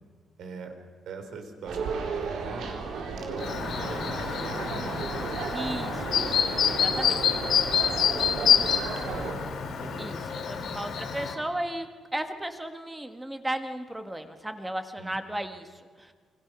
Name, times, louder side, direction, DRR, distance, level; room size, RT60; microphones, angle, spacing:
voice 1, 0.4-0.7 1.1-5.4 6.6-6.8 7.7-9.5 9.8-10.1 10.5-10.9 15.0-15.2, right 4 dB, 70° right, 6 dB, 4.1 m, -42 dB
sound 1, 1.7-9.3, right 4 dB, 85° right, 4.1 m, -34 dB
Chirp tweet, 3.4-11.3, left 8 dB, 65° left, 3.4 m, -27 dB
voice 2, 5.5-7.1 10.0-16.1, right 1 dB, 10° right, 7 dB, 1.6 m, -35 dB
28.5 x 24.5 x 6.2 m, 1.6 s
wide cardioid pair, 175°, 0 cm